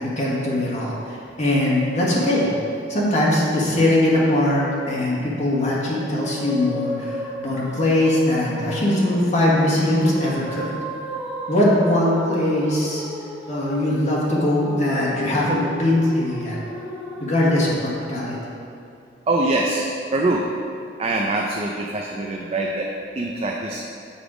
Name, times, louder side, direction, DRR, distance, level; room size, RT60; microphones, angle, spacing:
voice 1, 0.0-2.5 2.9-10.7 11.5-13.0 13.5-16.6 17.2-18.4, left 1 dB, 40° left, -5 dB, 1.5 m, -21 dB
sound 1, 5.9-17.7, equal, 5° right, 0.9 m, -35 dB
voice 2, 19.3-20.5 21.0-23.8, right 2 dB, 35° right, 0 dB, 0.4 m, -24 dB
7.1 x 4.6 x 5.0 m, 2.5 s
head